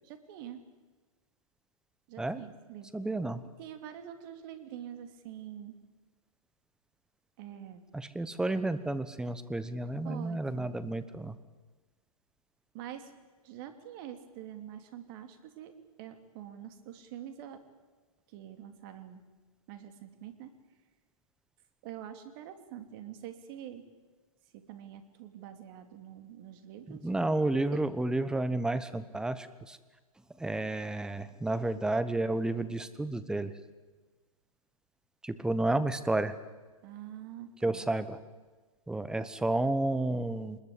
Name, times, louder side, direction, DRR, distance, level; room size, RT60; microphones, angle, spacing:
voice 1, 0.0-0.6 2.1-2.9 3.6-5.7 7.4-7.8 10.0-10.8 12.7-13.1 13.4-15.7 16.0-17.6 18.3-19.2 19.7-20.5 21.8-23.8 24.5-27.1 27.7-27.8 36.8-37.9, right 10 dB, 40° right, 8 dB, 3.0 m, -45 dB
voice 2, 2.9-3.4 7.9-11.4 26.9-29.8 30.4-33.5 35.2-36.3 37.6-38.2 38.9-40.6, right 2 dB, 5° right, 13 dB, 1.1 m, -31 dB
25.0 x 21.0 x 8.6 m, 1.3 s
hypercardioid pair, 125°, 18 cm